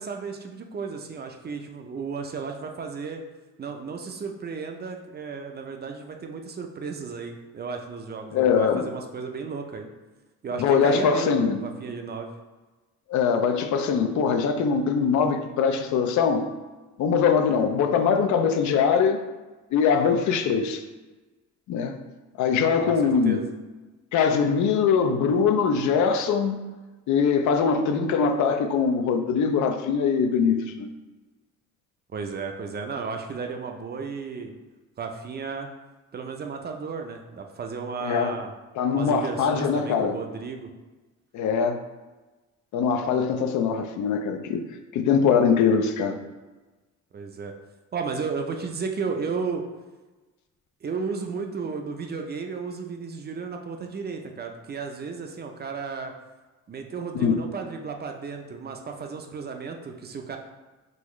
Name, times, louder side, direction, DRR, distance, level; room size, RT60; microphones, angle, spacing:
voice 1, 0.0-3.2 3.6-9.9 10.4-12.3 22.8-23.5 32.1-34.5 35.0-35.7 36.1-38.5 38.9-40.7 47.1-47.5 47.9-49.6 50.8-56.1 56.7-60.4, right 5 dB, 35° right, 4 dB, 0.4 m, -34 dB
voice 2, 8.3-8.9 10.5-11.6 13.1-16.5 17.0-19.2 19.7-20.8 21.7-22.0 22.4-23.4 24.1-26.6 27.1-30.9 38.0-38.4 38.8-40.2 41.3-41.8 42.7-44.7 44.9-46.2 57.2-57.4, left 6 dB, 75° left, 6 dB, 0.4 m, -22 dB
3.9 x 2.4 x 3.0 m, 1.2 s
cardioid pair, 90°, 30 cm